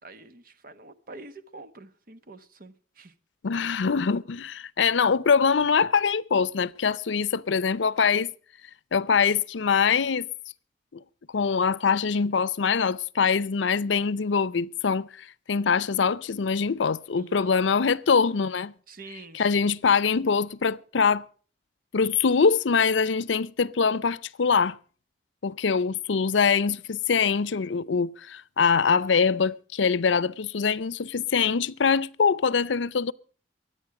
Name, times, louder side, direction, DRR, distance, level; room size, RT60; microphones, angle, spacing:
voice 1, 0.0-3.1 17.2-17.5 18.9-19.6, right 3 dB, 50° right, 1.1 m, -46 dB
voice 2, 3.4-8.3 8.9-10.3 11.3-18.7 19.3-21.2 21.9-24.8 25.4-33.1, left 5 dB, 90° left, 0.6 m, -23 dB
23.5 x 9.1 x 4.8 m
head